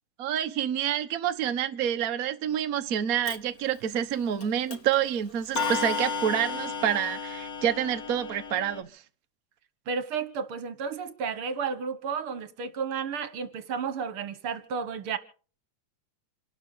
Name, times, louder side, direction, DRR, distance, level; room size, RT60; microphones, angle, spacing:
voice 1, 0.2-9.0, right 9 dB, 80° right, 0.8 m, -28 dB
Clock, 3.3-3.4 4.4-4.5 4.7-5.0 5.6-8.8, left 4 dB, 40° left, 1.3 m, -33 dB
voice 2, 9.9-15.2, right 6 dB, 55° right, 1.8 m, -32 dB
27.5 x 12.5 x 4.0 m
omnidirectional pair, 3.3 m